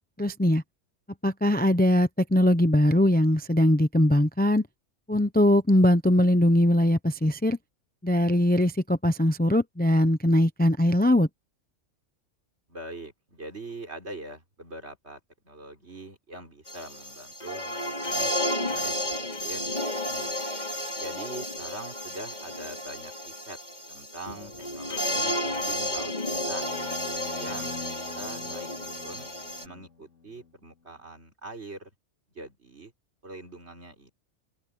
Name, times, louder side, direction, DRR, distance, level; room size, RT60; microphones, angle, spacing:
voice 1, 0.2-0.6 1.2-4.7 5.1-7.6 8.0-11.3, left 1 dB, 10° left, 0.7 m, -21 dB
voice 2, 12.7-15.2 15.4-18.3 18.6-19.6 20.0-20.3 20.9-23.6 23.9-26.7 27.3-29.3 29.6-31.9 32.3-32.9 33.2-34.1, right 2 dB, 60° right, 4.2 m, -43 dB
sound 1, 16.7-29.6, left 1 dB, 35° left, 3.9 m, -32 dB
sound 2, 26.2-30.5, left 4 dB, 85° left, 4.0 m, -44 dB
open air
omnidirectional pair, 1.3 m